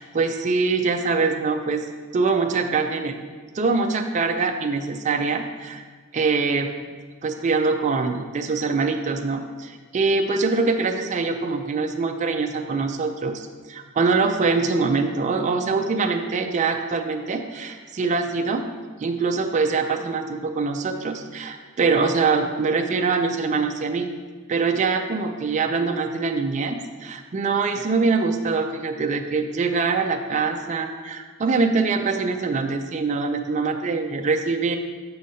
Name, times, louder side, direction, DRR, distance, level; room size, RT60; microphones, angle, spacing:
voice 1, 0.0-1.9 2.1-3.1 3.5-5.8 6.1-6.7 7.2-18.7 19.0-24.1 24.5-34.8, right 4 dB, 35° right, 4 dB, 0.4 m, -23 dB
7.7 x 6.2 x 2.7 m, 1.5 s
head